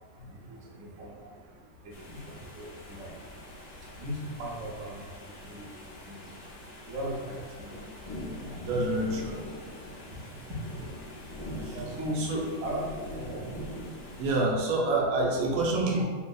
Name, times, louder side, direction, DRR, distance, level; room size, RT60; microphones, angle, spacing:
voice 1, 0.1-1.4 1.8-3.4 3.8-6.4 6.7-7.7 8.4-9.1 9.9-10.7 11.2-12.2 12.6-12.8 13.1-13.5 14.0-14.1, equal, 60° right, -4 dB, 1.0 m, -39 dB
sound 1, 1.9-14.4, left 1 dB, 80° left, 1.3 m, -43 dB
voice 2, 8.7-9.4 11.6-11.7 12.1-12.4 14.2-16.0, right 2 dB, 85° right, -2 dB, 1.3 m, -27 dB
3.7 x 2.5 x 2.2 m, 1.5 s
omnidirectional pair, 2.0 m